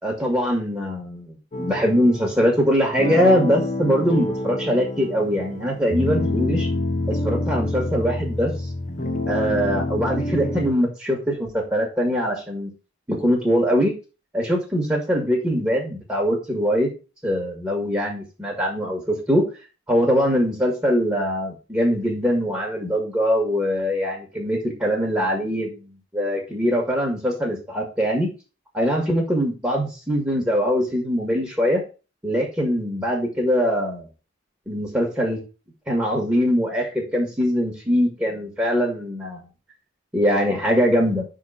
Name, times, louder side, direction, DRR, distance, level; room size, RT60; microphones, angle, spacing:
voice 1, 0.0-6.7 7.1-8.7 9.3-12.7 13.1-13.9 14.3-16.9 17.2-19.5 19.9-25.9 26.1-28.3 28.7-31.8 32.2-34.1 34.7-35.4 35.9-39.5 40.1-41.2, equal, 10° right, -1 dB, 1.6 m, -22 dB
sound 1, 1.5-10.7, left 2 dB, 40° left, 0.8 m, -27 dB
5.9 x 3.8 x 5.7 m, 0.32 s
head